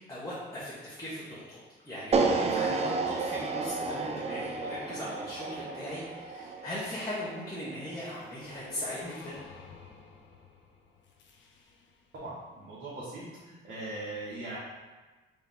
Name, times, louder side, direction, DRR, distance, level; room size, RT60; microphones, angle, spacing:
voice 1, 0.1-1.6 1.8-9.3, left 1 dB, 20° left, -9 dB, 1.1 m, -39 dB
sound 1, 2.1-8.3, right 4 dB, 30° right, 0.4 m, -32 dB
sound 2, 8.1-12.1, left 4 dB, 65° left, 0.7 m, -51 dB
voice 2, 12.1-14.6, right 2 dB, 60° right, -10 dB, 1.4 m, -40 dB
3.7 x 3.1 x 3.7 m, 1.2 s
cardioid pair, 90°, 20 cm